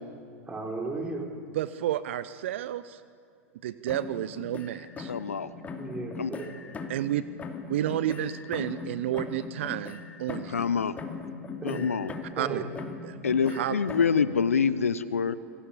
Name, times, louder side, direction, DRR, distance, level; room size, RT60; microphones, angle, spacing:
voice 1, 0.5-1.2 5.8-6.5 11.6-11.9 12.4-12.9, right 3 dB, 15° right, 1 dB, 5.3 m, -35 dB
voice 2, 1.5-3.0 3.6-5.1 6.9-7.2 7.7-10.7 12.4-12.6 13.0-13.2 13.5-13.8, right 12 dB, 55° right, 14 dB, 0.8 m, -31 dB
sound 1, 3.9-5.4 5.6-7.1 7.4-10.7 11.0-12.5 12.8-14.2, left 4 dB, 20° left, 2.8 m, -39 dB
voice 3, 5.1-5.5 6.2-6.3 10.5-11.0 11.6-12.1 13.2-15.4, left 6 dB, 75° left, 16 dB, 1.0 m, -26 dB
27.0 x 25.0 x 8.6 m, 2.2 s
figure-of-eight pair, 90°, 8 cm